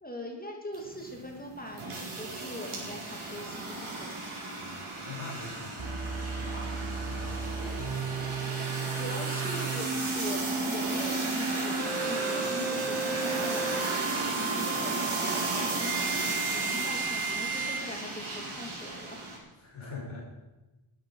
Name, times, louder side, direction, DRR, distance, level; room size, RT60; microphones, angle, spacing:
voice 1, 0.0-4.1 7.6-7.8 8.9-19.2, left 1 dB, 15° left, 1 dB, 2.6 m, -41 dB
sound 1, 0.7-19.4, right 2 dB, 75° right, 4.4 m, -34 dB
voice 2, 4.6-8.8 19.6-20.2, left 3 dB, 75° left, -3 dB, 5.7 m, -44 dB
sound 2, 5.8-17.8, right 5 dB, 60° right, 2.1 m, -34 dB
14.0 x 10.5 x 5.6 m, 1.1 s
wide cardioid pair, 90°, 49 cm